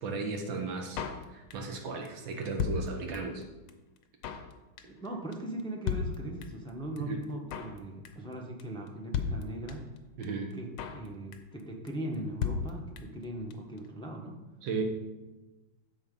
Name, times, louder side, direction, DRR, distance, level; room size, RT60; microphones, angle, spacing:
voice 1, 0.0-1.0 1.3-3.5 7.1-7.2 10.2-10.5 14.6-14.8, right 4 dB, 70° right, 3 dB, 1.9 m, -35 dB
Drum kit, 1.0-1.8 2.1-2.2 2.3-3.4 3.7-3.8 4.0-4.5 4.8-5.1 5.3-5.4 5.6-5.7 5.9-6.7 7.0-7.1 7.2-7.8 8.1-8.3 8.6-8.7 8.9-9.0 9.1-10.0 10.2-10.3 10.5-11.1 11.3-11.6 11.9-12.0 12.1-12.2 12.4-13.2 13.5-13.6 13.8-13.9, left 6 dB, 80° left, 1.6 m, -34 dB
voice 2, 4.8-9.8 10.5-14.4, right 1 dB, 5° left, 0 dB, 0.5 m, -39 dB
11.5 x 3.9 x 5.3 m, 1.1 s
omnidirectional pair, 2.3 m